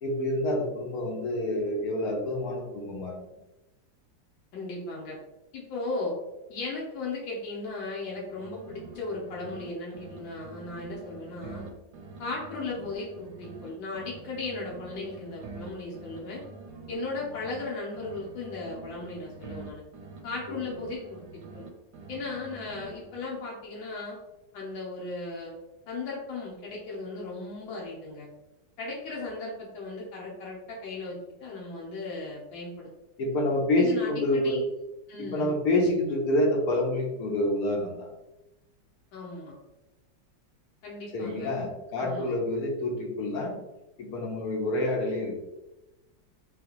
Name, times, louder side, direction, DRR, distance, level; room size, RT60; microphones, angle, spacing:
voice 1, 0.0-3.2 33.2-34.5 35.2-38.1 41.1-43.5 44.0-45.4, left 1 dB, 60° left, 0 dB, 1.2 m, -27 dB
voice 2, 4.5-5.2 5.5-6.2 6.5-11.6 12.2-16.4 16.9-19.8 20.2-21.2 21.5-21.6 22.1-24.2 24.5-25.5 25.9-28.3 28.8-32.9 33.8-34.6 35.1-35.5 39.1-39.6 40.8-41.5 42.0-42.3, left 3 dB, 80° left, -3 dB, 1.5 m, -36 dB
sound 1, 8.1-9.7 9.9-13.7 13.9-17.7 17.9-21.7 21.9-23.4, right 3 dB, 70° right, 1.1 m, -46 dB
4.0 x 3.3 x 2.9 m, 1.0 s
omnidirectional pair, 2.0 m